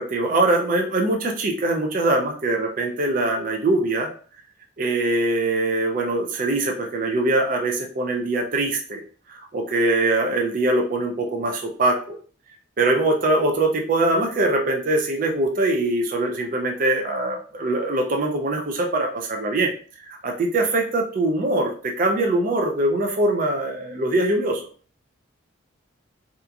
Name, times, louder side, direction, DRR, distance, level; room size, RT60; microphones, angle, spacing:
voice 1, 0.0-4.1 4.8-9.0 9.3-12.2 12.8-19.7 20.1-24.7, right 2 dB, 40° right, 2 dB, 0.4 m, -22 dB
2.8 x 2.4 x 2.3 m, 0.43 s
head